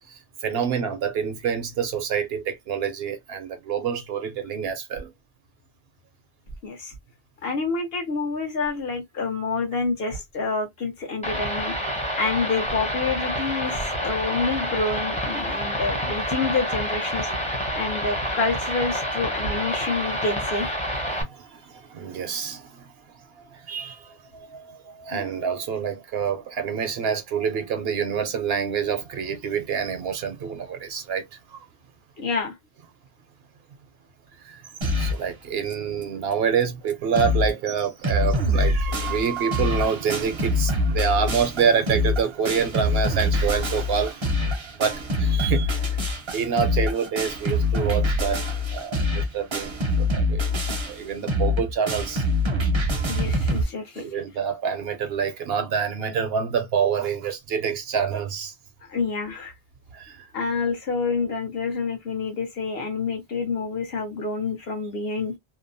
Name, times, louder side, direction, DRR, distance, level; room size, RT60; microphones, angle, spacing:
voice 1, 0.1-5.1 21.1-22.9 23.4-31.2 31.5-31.7 34.4-34.6 35.0-44.4 44.7-46.0 46.3-48.4 48.7-52.2 54.0-58.5 59.9-60.3, right 7 dB, 65° right, 0.7 m, -27 dB
voice 2, 6.6-6.9 7.4-20.7 25.1-25.3 32.2-32.5 53.1-54.1 58.9-59.5 60.3-65.3, left 4 dB, 60° left, 1.1 m, -28 dB
sound 1, 11.2-21.2, equal, 5° left, 0.7 m, -28 dB
sound 2, 34.8-35.3 35.7-35.8 36.0-36.1 36.6-36.7 36.9-37.5 37.8-53.6, left 1 dB, 35° right, 0.5 m, -24 dB
2.8 x 2.1 x 2.5 m
omnidirectional pair, 1.2 m